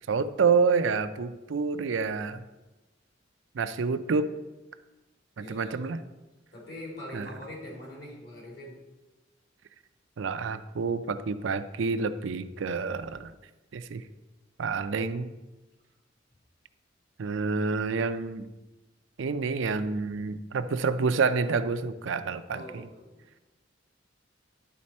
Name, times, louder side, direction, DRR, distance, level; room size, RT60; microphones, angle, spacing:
voice 1, 0.1-2.4 3.5-4.3 5.4-6.0 7.1-7.3 10.2-13.3 13.7-14.0 14.6-15.3 17.2-18.5 19.2-22.9, right 5 dB, 85° right, 11 dB, 0.5 m, -28 dB
voice 2, 5.4-5.9 6.5-8.8 22.5-23.4, left 1 dB, 60° left, -3 dB, 2.9 m, -43 dB
11.5 x 4.3 x 4.2 m, 1.1 s
head